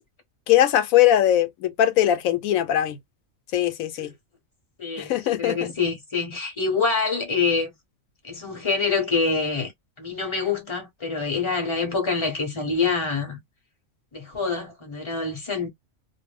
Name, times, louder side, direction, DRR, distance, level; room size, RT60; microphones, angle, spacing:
voice 1, 0.5-3.0 3.5-4.1 5.0-5.7, left 12 dB, 85° left, 1.0 m, -20 dB
voice 2, 4.8-7.7 8.2-9.7 10.0-13.4 14.1-15.7, left 4 dB, 25° left, 1.0 m, -26 dB
2.4 x 2.0 x 3.2 m
omnidirectional pair, 1.4 m